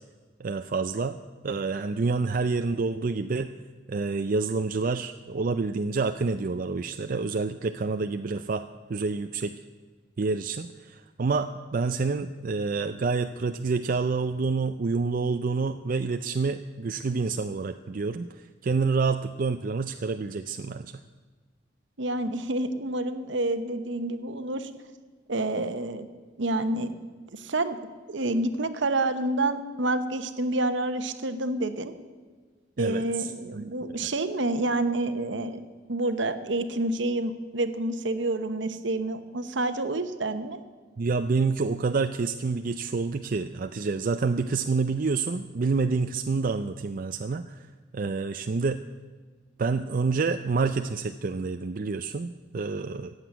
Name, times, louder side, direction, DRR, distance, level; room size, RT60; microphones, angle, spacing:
voice 1, 0.4-1.2 1.4-3.5 3.9-9.5 10.2-21.0 32.8-33.3 41.0-47.7 47.9-48.8 49.6-53.1, right 4 dB, 45° right, 8 dB, 0.4 m, -28 dB
voice 2, 22.0-24.7 25.3-26.1 26.4-31.9 32.8-40.6, right 2 dB, 70° right, 10 dB, 1.0 m, -28 dB
15.0 x 8.1 x 9.3 m, 1.4 s
head